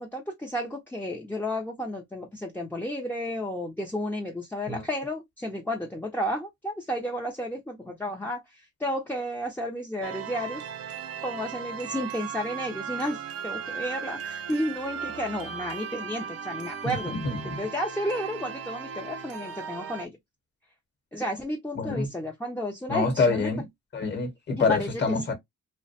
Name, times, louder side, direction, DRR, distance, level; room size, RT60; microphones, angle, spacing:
voice 1, 0.0-10.7 11.2-17.2 17.6-20.2 21.1-23.5 24.6-25.0, equal, 5° left, 0.5 m, -32 dB
sound 1, 10.0-20.1, right 7 dB, 50° right, 0.5 m, -37 dB
voice 2, 16.8-17.6 21.8-22.1 22.9-23.7 23.9-25.4, left 4 dB, 35° left, 1.0 m, -26 dB
2.3 x 2.1 x 2.6 m
cardioid pair, 90°, 30 cm